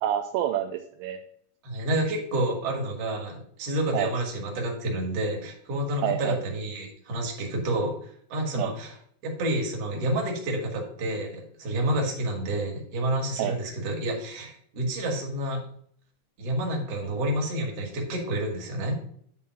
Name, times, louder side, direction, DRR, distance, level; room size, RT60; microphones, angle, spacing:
voice 1, 0.0-1.2 3.9-4.1 6.0-6.4 8.6-8.7 13.4-13.6, right 11 dB, 80° right, 5 dB, 2.2 m, -28 dB
voice 2, 1.6-8.0 8.3-9.0 9.2-15.6 16.4-19.0, right 1 dB, 50° right, 0 dB, 2.4 m, -29 dB
9.7 x 3.7 x 5.5 m, 0.63 s
omnidirectional pair, 4.2 m